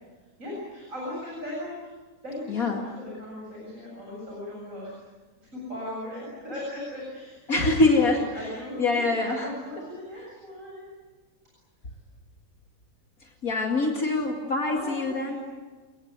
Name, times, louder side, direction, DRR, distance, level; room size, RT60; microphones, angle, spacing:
voice 1, 0.4-1.9 2.2-5.0 5.5-10.9 14.6-15.4, left 1 dB, 55° right, -4 dB, 8.3 m, -37 dB
voice 2, 2.5-2.8 7.5-8.5 8.8-9.5 13.2-15.4, left 3 dB, 65° left, 2 dB, 2.8 m, -24 dB
29.5 x 19.5 x 9.6 m, 1.4 s
omnidirectional pair, 1.6 m